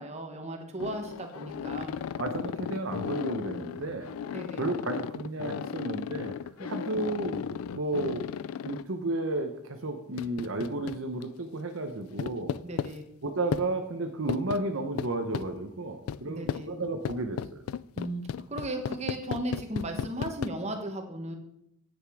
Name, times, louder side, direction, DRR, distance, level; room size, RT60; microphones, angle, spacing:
voice 1, 0.0-2.0 4.3-4.6 6.6-6.7 12.6-13.0 16.2-16.7 18.0-18.2 18.5-21.4, right 1 dB, 30° right, 4 dB, 1.5 m, -36 dB
sound 1, 0.8-8.8 10.2-11.2 12.2-12.9 13.5-13.7 14.3-14.6 15.0-15.5 16.1-16.2 16.5-16.6 17.1-20.5, left 7 dB, 80° left, 0.3 m, -35 dB
voice 2, 2.2-4.1 4.6-6.3 6.6-8.3 8.6-12.5 13.2-17.6, right 2 dB, 65° right, 5 dB, 0.9 m, -33 dB
10.0 x 8.1 x 4.7 m, 0.75 s
head